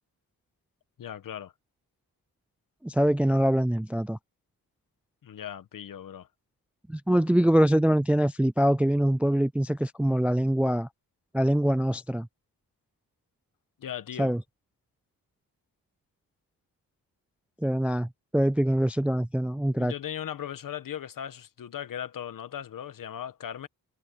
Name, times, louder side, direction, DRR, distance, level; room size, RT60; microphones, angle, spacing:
voice 1, 1.0-1.5 5.2-6.3 13.8-14.3 19.7-23.7, left 9 dB, 60° left, 1.3 m, -38 dB
voice 2, 2.8-4.2 6.9-10.9 11.3-12.3 14.2-14.4 17.6-19.9, right 1 dB, 5° right, 0.3 m, -24 dB
wide cardioid pair, 125°, 36 cm